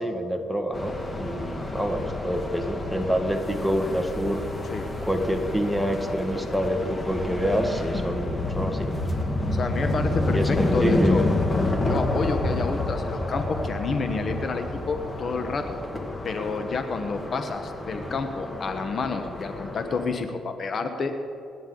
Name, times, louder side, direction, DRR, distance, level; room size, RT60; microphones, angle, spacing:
voice 1, 0.0-4.4 5.0-8.9 10.3-11.3, equal, ahead, 4 dB, 1.8 m, -27 dB
sound 1, 0.7-20.1, left 2 dB, 20° left, 2.0 m, -29 dB
voice 2, 9.5-11.2 11.8-15.8 16.2-21.2, left 4 dB, 50° left, 7 dB, 1.1 m, -29 dB
28.5 x 10.0 x 3.9 m, 2.7 s
cardioid pair, 90°, 0 cm